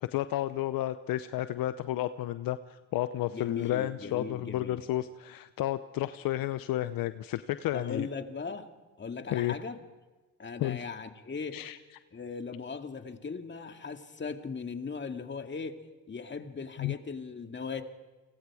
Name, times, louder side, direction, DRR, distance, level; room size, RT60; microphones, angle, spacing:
voice 1, 0.0-8.1 9.3-9.5 10.6-10.8 11.5-11.8 16.8-16.9, left 14 dB, 70° left, 13 dB, 0.7 m, -32 dB
voice 2, 3.3-4.8 7.7-8.7 9.0-9.8 10.4-11.6 12.1-17.8, left 5 dB, 30° left, 6 dB, 2.2 m, -38 dB
29.5 x 19.5 x 4.9 m, 1.2 s
supercardioid pair, 70°, 35 cm